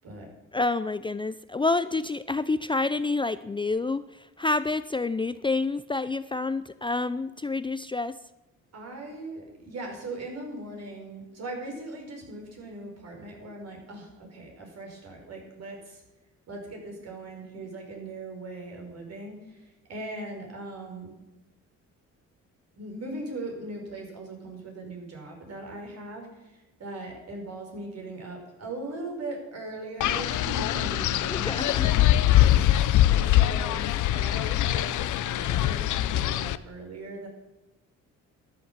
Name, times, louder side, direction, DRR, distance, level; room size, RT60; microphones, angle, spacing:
voice 1, 0.5-8.2 31.3-32.0, left 3 dB, 15° left, 14 dB, 0.5 m, -28 dB
voice 2, 8.7-16.0 16.5-21.1 22.7-32.5 33.1-37.3, right 2 dB, 55° right, 1 dB, 6.1 m, -39 dB
Wind, 30.0-36.6, left 13 dB, 75° left, 0.7 m, -23 dB
13.5 x 11.0 x 7.4 m, 1.0 s
cardioid pair, 90°, 30 cm